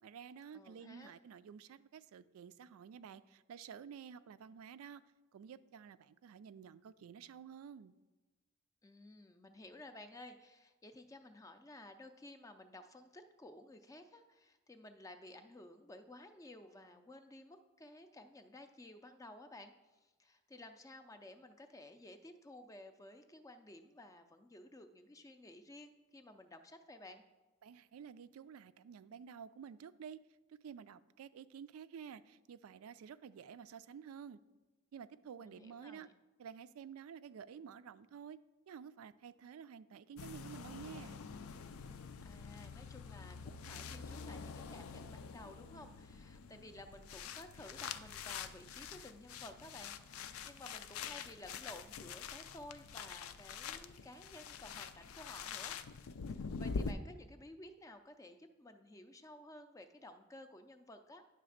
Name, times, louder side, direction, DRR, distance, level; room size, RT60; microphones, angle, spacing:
voice 1, 0.0-5.0 5.3-7.9 27.6-30.2 30.6-34.4 34.9-36.1 36.4-38.4 38.7-41.2, right 7 dB, 85° right, 15 dB, 0.3 m, -51 dB
voice 2, 0.5-1.2 8.8-19.7 20.0-27.2 35.4-36.1 42.2-56.0 56.3-61.3, left 1 dB, 15° left, 8 dB, 0.4 m, -54 dB
sound 1, 40.2-56.9, left 5 dB, 80° left, 0.4 m, -46 dB
9.9 x 3.3 x 6.4 m, 1.2 s
head